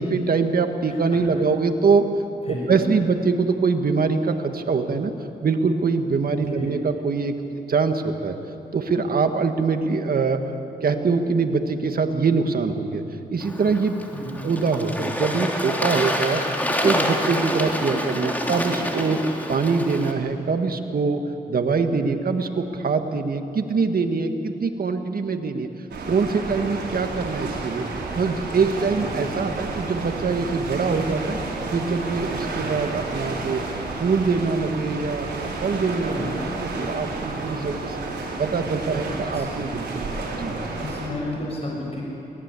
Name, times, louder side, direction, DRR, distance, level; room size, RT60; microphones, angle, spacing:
voice 1, 0.0-2.0 2.7-5.1 5.4-7.4 7.7-8.3 8.7-10.4 10.8-13.0 13.3-14.0 14.4-16.4 16.7-19.2 19.5-25.7 26.1-27.8 28.2-31.4 31.7-33.6 33.9-36.3 36.6-38.0 38.4-40.5, right 4 dB, 60° right, 6 dB, 1.7 m, -23 dB
voice 2, 0.9-1.2 2.4-2.9 6.4-6.8 14.1-14.4 29.0-29.4 36.1-36.5 38.8-39.5 40.8-42.0, left 1 dB, 35° left, -2 dB, 6.5 m, -33 dB
Bird / Water, 13.4-20.1, equal, 10° left, 3.2 m, -27 dB
sound 1, 25.9-41.1, right 3 dB, 85° right, 4.3 m, -31 dB
23.0 x 18.0 x 8.4 m, 3.0 s
cardioid pair, 60°, 17 cm